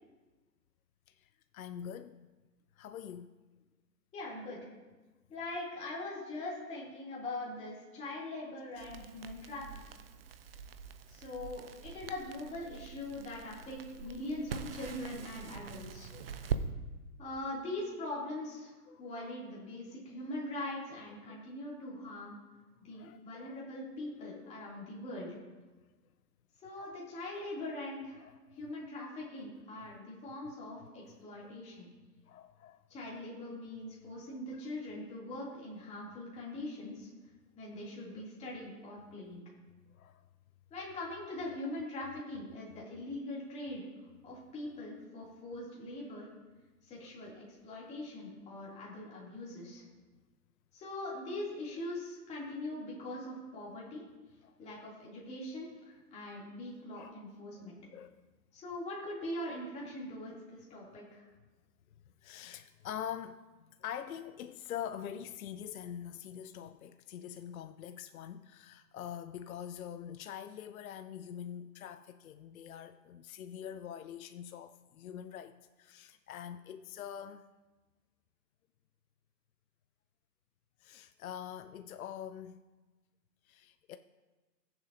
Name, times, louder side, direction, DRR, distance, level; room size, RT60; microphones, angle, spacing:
voice 1, 1.1-2.2 2.8-3.3 8.8-8.9 14.1-14.5 16.1-16.3 18.9-19.3 21.3-21.5 22.9-23.6 26.7-27.0 28.2-28.4 30.8-30.9 31.4-31.5 32.3-33.2 34.5-34.6 39.9-40.3 46.1-46.2 47.0-47.1 54.4-54.8 57.0-57.1 57.6-57.7 57.9-58.2 62.2-77.4 80.8-82.6 83.5-84.0, left 9 dB, 60° left, 0.6 m, -45 dB
voice 2, 4.1-4.6 5.3-9.7 11.1-16.1 17.2-22.4 22.8-25.3 26.6-28.3 28.5-31.9 32.9-37.1 37.6-39.4 40.7-43.8 44.2-46.3 46.8-49.8 50.7-54.0 54.6-57.8 58.5-61.2, left 1 dB, 15° left, 2.6 m, -42 dB
Crackle, 8.8-16.6, right 6 dB, 40° right, 0.5 m, -43 dB
20.0 x 7.3 x 2.7 m
hypercardioid pair, 150°, 50 cm